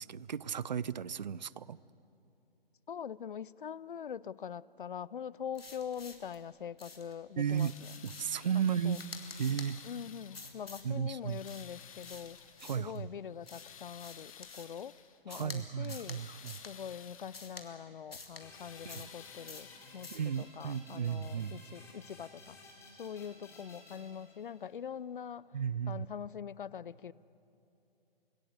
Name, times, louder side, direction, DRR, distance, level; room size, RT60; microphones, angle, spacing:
voice 1, 0.0-1.8 7.4-7.7 8.0-9.0 9.4-9.8 10.8-11.4 12.6-13.1 15.3-16.6 18.9-19.0 20.1-21.6 25.5-26.1, right 8 dB, 50° right, 21 dB, 0.5 m, -34 dB
voice 2, 2.9-7.9 8.5-9.0 9.8-12.4 12.8-15.0 15.2-16.2 16.6-22.6 22.9-25.6 25.9-27.1, left 8 dB, 55° left, 21 dB, 0.5 m, -43 dB
sound 1, 5.5-6.4 6.8-7.1 7.5-8.4 8.9-9.7 10.3-10.9 11.4-13.0 13.5-14.8 15.3-15.6 15.8-16.2 16.5-16.7 17.3-17.7 18.1-18.4 18.9-19.2 19.5-19.7 20.0-20.3, left 3 dB, 75° left, 2.7 m, -49 dB
sound 2, 7.3-10.8 11.2-12.8 13.2-15.2 15.6-17.7 18.2-20.3 21.4-21.5 22.1-22.2, left 9 dB, 35° left, 1.1 m, -55 dB
sound 3, 18.4-24.8, left 2 dB, 10° left, 2.7 m, -55 dB
26.0 x 17.0 x 8.0 m, 2.8 s
figure-of-eight pair, 135°, 30 cm